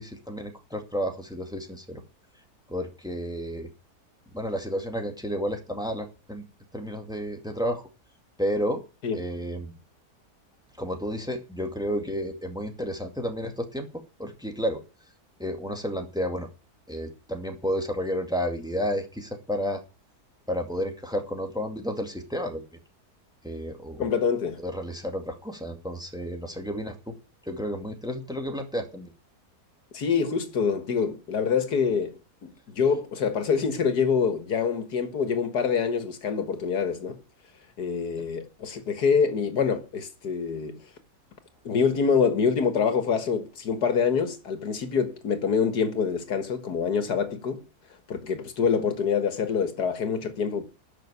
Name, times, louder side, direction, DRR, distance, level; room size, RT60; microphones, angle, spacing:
voice 1, 0.0-2.0 2.7-3.7 4.3-6.4 6.7-7.8 8.4-8.8 9.1-9.7 10.8-14.8 15.4-16.5 16.9-19.8 20.5-22.6 23.4-24.1 24.6-27.2 27.4-29.1, equal, 5° right, 2.1 m, -31 dB
voice 2, 24.0-24.6 29.9-37.2 37.8-40.8 41.6-47.6 48.1-50.7, left 6 dB, 90° left, 2.2 m, -26 dB
13.0 x 6.1 x 9.6 m
omnidirectional pair, 1.6 m